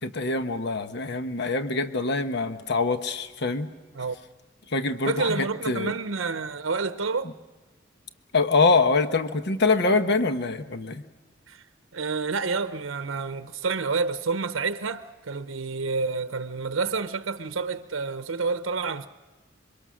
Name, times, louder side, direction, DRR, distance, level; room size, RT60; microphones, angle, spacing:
voice 1, 0.0-3.7 4.7-5.9 8.3-11.0, left 3 dB, 60° left, 1.1 m, -24 dB
voice 2, 5.0-7.3 11.5-11.6 11.9-19.1, right 4 dB, 90° right, 0.8 m, -29 dB
26.5 x 23.5 x 6.3 m
head